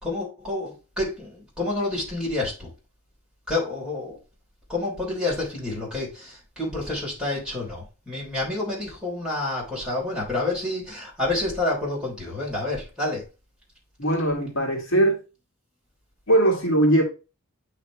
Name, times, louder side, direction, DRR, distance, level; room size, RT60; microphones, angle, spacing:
voice 1, 0.0-2.7 3.5-4.2 4.7-13.2, left 2 dB, 5° right, -6 dB, 3.3 m, -29 dB
voice 2, 14.0-15.2 16.3-17.0, right 1 dB, 60° left, 0 dB, 1.8 m, -20 dB
8.8 x 3.4 x 3.1 m, 0.30 s
head